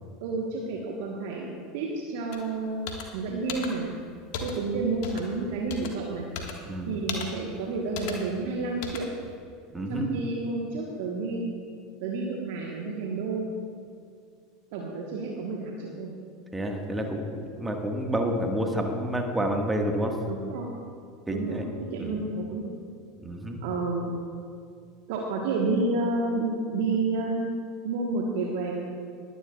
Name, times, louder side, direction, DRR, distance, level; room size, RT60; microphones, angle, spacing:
voice 1, 0.2-3.9 4.4-6.3 6.9-9.1 9.9-11.5 12.0-13.5 14.7-16.1 20.3-20.7 21.3-21.6 21.9-22.7 23.6-24.1 25.1-27.5 27.8-28.7, right 3 dB, 55° right, -1 dB, 1.2 m, -30 dB
sound 1, 2.3-2.4 2.9-3.0 3.5-3.7 4.3-4.6 5.0-5.3 5.7-5.9 6.4-6.6 7.1-7.3 8.0-8.1 8.8-9.0, left 6 dB, 55° left, 1.6 m, -35 dB
voice 2, 6.6-7.0 9.7-10.1 16.5-20.2 21.3-21.6 22.0-22.2 23.2-23.6, equal, 10° right, 2 dB, 1.6 m, -29 dB
21.5 x 11.0 x 2.4 m, 2.2 s
figure-of-eight pair, 75°, 0 cm